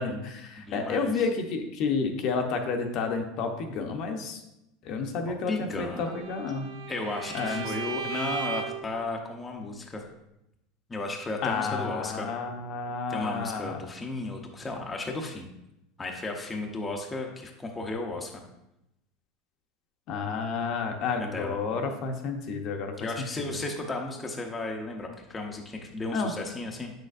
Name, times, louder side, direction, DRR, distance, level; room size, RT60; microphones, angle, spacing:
voice 1, 0.0-4.4 4.8-6.7 7.3-7.6 11.4-13.9 20.1-23.1 23.4-23.6 26.1-26.3, left 4 dB, 45° left, 4 dB, 0.8 m, -30 dB
voice 2, 0.6-1.2 5.5-6.2 6.9-10.0 10.9-12.3 13.1-15.5 16.0-18.4 21.2-21.6 23.0-26.9, left 2 dB, 15° left, 1 dB, 0.7 m, -34 dB
Bowed string instrument, 5.9-8.9, right 5 dB, 80° right, 0.6 m, -36 dB
7.8 x 6.5 x 2.5 m, 0.87 s
supercardioid pair, 150°, 0 cm